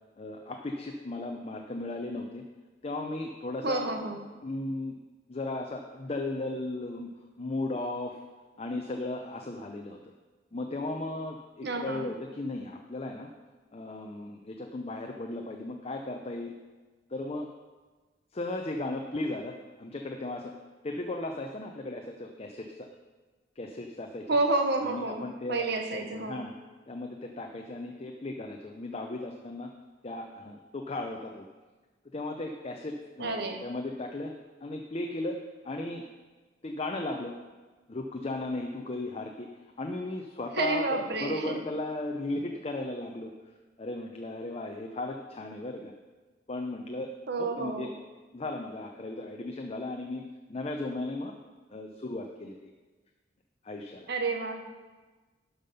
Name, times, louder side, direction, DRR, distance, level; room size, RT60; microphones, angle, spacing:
voice 1, 0.2-2.5 2.8-3.8 4.4-5.0 5.3-7.1 7.4-8.2 8.6-10.0 10.5-13.3 13.7-16.5 17.1-17.5 18.3-20.5 20.8-22.9 23.6-24.4 24.8-25.7 25.9-26.5 26.9-29.7 30.0-31.5 32.1-34.3 34.6-35.4 35.6-36.0 36.6-37.4 37.9-39.5 39.8-43.3 43.8-45.9 46.5-47.9 48.3-51.3 51.7-52.7 53.6-54.1, left 2 dB, 35° left, 3 dB, 0.6 m, -36 dB
voice 2, 3.6-4.2 11.6-12.1 24.3-26.4 33.2-33.6 40.6-41.6 47.3-47.9 54.1-54.6, right 3 dB, 60° right, 5 dB, 1.1 m, -30 dB
12.0 x 5.7 x 5.2 m, 1.3 s
head